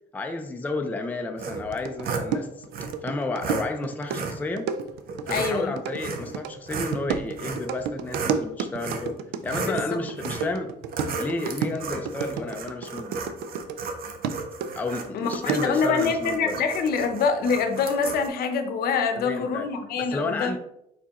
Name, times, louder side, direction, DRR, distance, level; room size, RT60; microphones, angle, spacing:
voice 1, 0.1-2.7 3.0-4.7 5.3-9.2 9.4-10.7 11.2-13.3 14.8-16.5 19.1-19.7 20.0-20.6, left 3 dB, 10° left, 5 dB, 0.4 m, -31 dB
sound 1, 1.4-2.3 2.7-2.9 3.4-3.6 4.1-4.4 5.1-5.5 6.0-6.3 6.7-8.4 8.8-9.1 9.4-9.8 10.2-10.5 10.9-18.3, right 4 dB, 60° right, 0.8 m, -34 dB
sound 2, 1.7-13.9 14.2-15.9, right 7 dB, 85° right, 0.4 m, -32 dB
voice 2, 5.3-5.7 9.6-10.0 15.1-20.6, left 5 dB, 65° left, 7 dB, 0.7 m, -25 dB
4.4 x 4.1 x 2.9 m, 0.80 s
cardioid pair, 110°, 17 cm